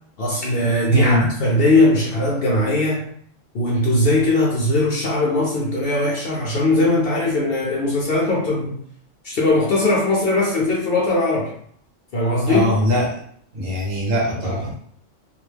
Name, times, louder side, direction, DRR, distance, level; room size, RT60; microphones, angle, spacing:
voice 1, 0.2-3.0 3.5-8.8 9.2-11.5 12.1-12.7 14.4-14.6, left 2 dB, 55° left, -4 dB, 0.7 m, -19 dB
voice 2, 0.9-1.2 12.4-13.1 13.5-14.8, equal, 50° right, -4 dB, 1.0 m, -21 dB
2.4 x 2.0 x 3.2 m, 0.62 s
omnidirectional pair, 1.3 m